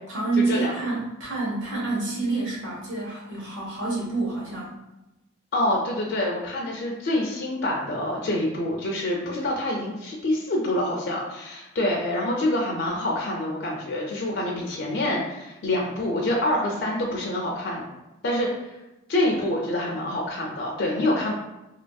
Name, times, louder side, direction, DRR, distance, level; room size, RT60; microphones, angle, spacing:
voice 1, 0.1-4.7, right 3 dB, 55° right, -6 dB, 1.1 m, -28 dB
voice 2, 5.5-17.8 18.2-18.8 19.1-21.3, left 1 dB, 50° left, -2 dB, 0.4 m, -26 dB
2.8 x 2.6 x 2.2 m, 0.98 s
head